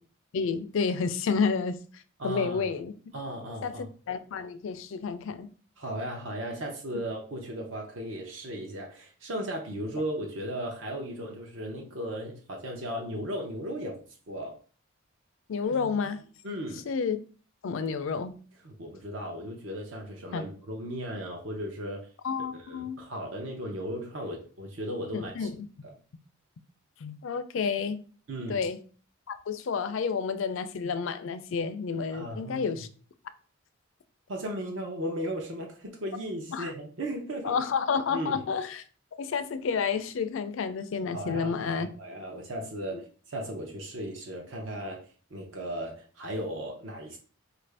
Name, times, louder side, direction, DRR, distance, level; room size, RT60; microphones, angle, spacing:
voice 1, 0.3-1.8 2.2-2.9 3.6-5.5 6.9-7.0 15.5-16.2 16.9-17.2 17.6-18.3 20.3-20.5 22.2-23.0 25.1-25.7 27.0-28.0 28.5-28.8 29.3-32.9 36.5-36.7 37.4-38.8 39.2-41.9 42.9-43.0, left 5 dB, 65° left, 0.4 m, -30 dB
voice 2, 2.2-2.7 3.1-3.9 5.8-14.6 16.4-16.8 18.6-22.1 22.5-25.5 25.8-25.9 28.3-28.6 32.1-32.8 34.3-37.6 38.1-38.4 41.1-47.2, equal, 60° right, 0.6 m, -36 dB
4.5 x 2.5 x 3.3 m
head